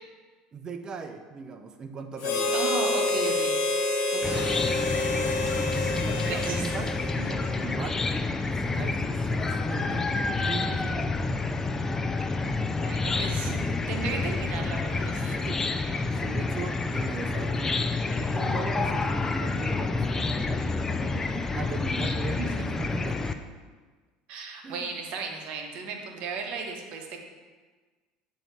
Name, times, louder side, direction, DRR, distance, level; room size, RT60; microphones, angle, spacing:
voice 1, 0.5-2.6 6.0-8.0 8.5-11.1 13.7-13.8 15.3-15.6 16.1-23.3 24.6-24.9, right 4 dB, 35° right, 7 dB, 0.6 m, -38 dB
Harmonica, 2.2-7.7, left 2 dB, 60° left, 1.0 m, -28 dB
voice 2, 2.5-3.6 4.1-4.5 6.2-6.7 12.6-13.6 13.9-15.4 22.0-22.9 24.3-27.2, right 4 dB, 65° right, 3 dB, 0.9 m, -35 dB
Chicken rooster / Cricket, 4.2-23.3, left 3 dB, 20° left, 0.4 m, -29 dB
7.8 x 2.8 x 4.5 m, 1.4 s
supercardioid pair, 105°, 2 cm